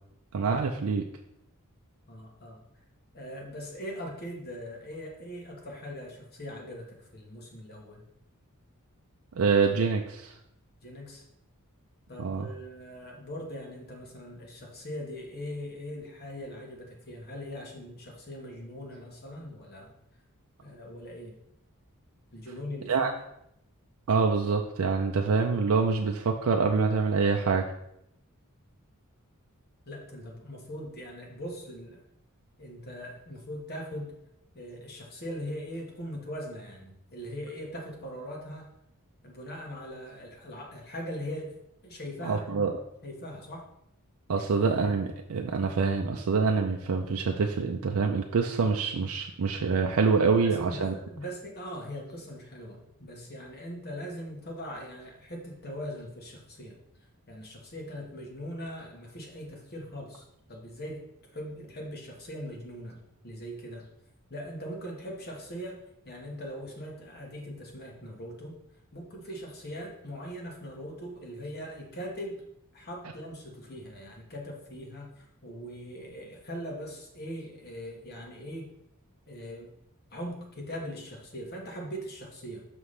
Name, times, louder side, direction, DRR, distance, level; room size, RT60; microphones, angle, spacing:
voice 1, 0.3-1.0 9.3-10.3 12.2-12.5 22.9-23.1 24.1-27.7 42.2-42.7 44.3-50.9, right 4 dB, 70° right, 2 dB, 0.5 m, -26 dB
voice 2, 2.1-2.6 3.1-8.1 10.8-11.2 12.1-19.9 20.6-21.4 22.3-23.1 29.8-32.0 32.6-34.2 34.5-38.7 39.2-41.6 41.8-42.7 43.0-43.7 44.4-44.6 50.3-56.8 57.3-63.9 64.3-65.8 66.0-68.6 68.9-72.5 72.7-78.7 79.3-79.7 80.1-82.7, equal, 45° left, 0 dB, 1.4 m, -41 dB
5.9 x 5.6 x 3.3 m, 0.79 s
head